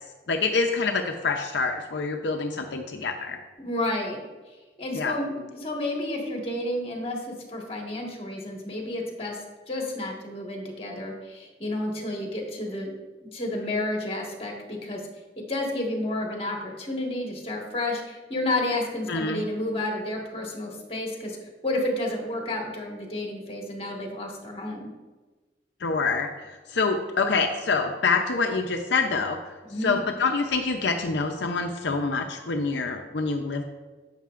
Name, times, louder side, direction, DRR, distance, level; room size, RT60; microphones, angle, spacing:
voice 1, 0.3-3.4 4.9-5.1 19.1-19.4 25.8-29.4 29.8-33.6, left 4 dB, 75° left, 4 dB, 0.6 m, -26 dB
voice 2, 3.6-4.2 4.8-12.9 13.2-15.0 15.5-21.4 21.6-24.9 29.7-30.0, left 1 dB, 30° left, 0 dB, 1.5 m, -31 dB
11.5 x 8.1 x 2.5 m, 1.3 s
head